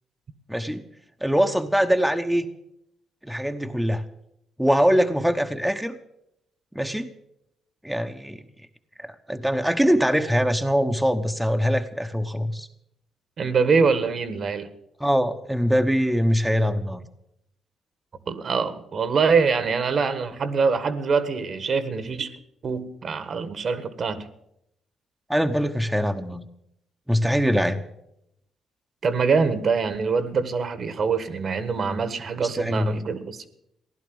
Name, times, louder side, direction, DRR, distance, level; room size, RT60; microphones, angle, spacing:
voice 1, 0.5-0.8 1.2-2.5 3.2-4.0 4.6-6.0 6.7-7.1 7.8-8.4 9.0-12.7 15.0-17.0 25.3-26.5 27.1-27.8 32.4-32.9, equal, 5° right, 1.0 m, -23 dB
voice 2, 13.4-14.7 18.3-22.3 22.6-24.3 29.0-33.5, right 5 dB, 50° right, 1.5 m, -24 dB
15.5 x 11.5 x 7.8 m
cardioid pair, 90°, 0 cm